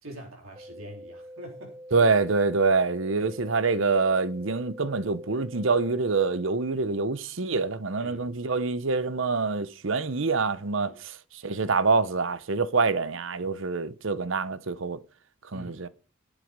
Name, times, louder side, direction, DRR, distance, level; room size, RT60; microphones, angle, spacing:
voice 1, 0.0-2.1 3.2-3.4 8.0-8.3 10.8-11.0 11.4-11.8 13.4-13.5 15.5-15.8, right 1 dB, 85° right, 3.6 m, -45 dB
sound 1, 0.5-6.5, equal, 35° right, 2.3 m, -45 dB
voice 2, 1.9-15.0 15.5-15.9, right 4 dB, 65° right, 0.8 m, -26 dB
11.5 x 8.4 x 5.2 m
head